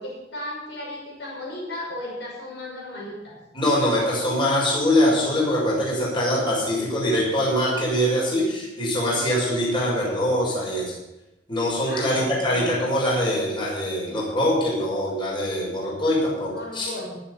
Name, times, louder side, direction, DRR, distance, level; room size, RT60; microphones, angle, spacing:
voice 1, 0.0-3.4 11.8-12.6 16.5-17.2, left 1 dB, 70° left, -3 dB, 5.9 m, -35 dB
voice 2, 3.5-10.8 11.5-16.9, equal, 25° left, -5 dB, 6.5 m, -23 dB
21.0 x 8.0 x 5.7 m, 0.97 s
head